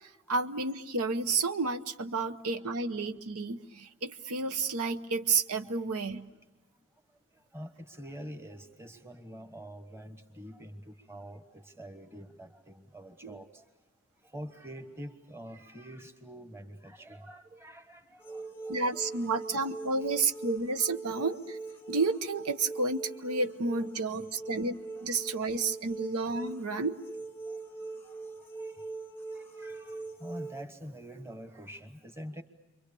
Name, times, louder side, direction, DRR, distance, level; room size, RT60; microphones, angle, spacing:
voice 1, 0.3-6.2 13.2-13.4 18.7-21.6 21.9-26.9, right 3 dB, 90° right, 10 dB, 0.9 m, -31 dB
voice 2, 7.5-13.6 14.3-19.7 20.0-20.2 23.8-24.2 28.6-28.8 29.3-32.4, equal, 10° right, 7 dB, 1.3 m, -46 dB
sound 1, 18.2-30.6, right 3 dB, 10° left, 0.8 m, -42 dB
29.5 x 23.5 x 6.9 m, 1.1 s
head